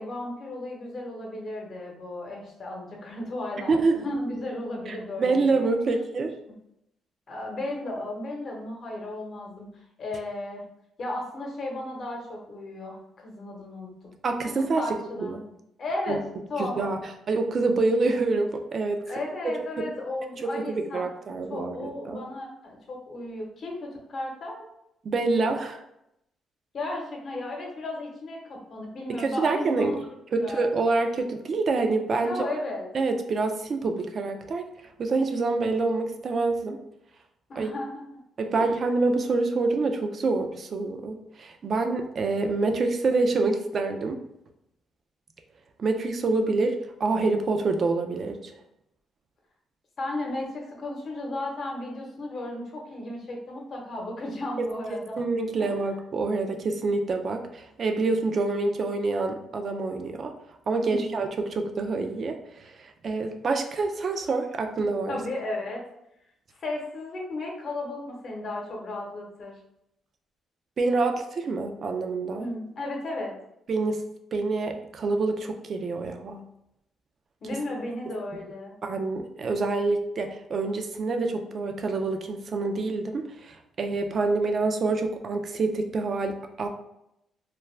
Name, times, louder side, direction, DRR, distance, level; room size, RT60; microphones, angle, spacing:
voice 1, 0.0-6.2 7.3-10.6 11.0-13.9 14.4-15.3 15.8-16.2 16.5-16.9 19.1-21.0 21.5-24.6 26.7-30.0 30.4-30.7 32.2-32.9 37.5-38.2 38.5-38.7 50.0-55.2 55.6-55.8 60.8-61.2 65.1-65.8 66.5-69.5 72.4-73.3 77.4-78.7, left 2 dB, 50° left, 0 dB, 0.8 m, -34 dB
voice 2, 3.7-4.0 4.9-6.3 14.2-14.8 15.2-15.4 16.1-16.2 16.6-17.0 17.3-19.0 20.4-22.2 25.0-25.8 29.1-30.0 30.3-32.3 32.9-34.7 35.0-36.8 37.6-37.7 38.4-44.2 45.8-48.5 55.2-60.3 60.7-65.2 70.8-72.5 73.7-74.0 74.3-76.4 78.1-78.2 78.8-86.7, right 3 dB, 50° right, 5 dB, 0.4 m, -26 dB
2.4 x 2.2 x 3.2 m, 0.82 s
cardioid pair, 90°, 0 cm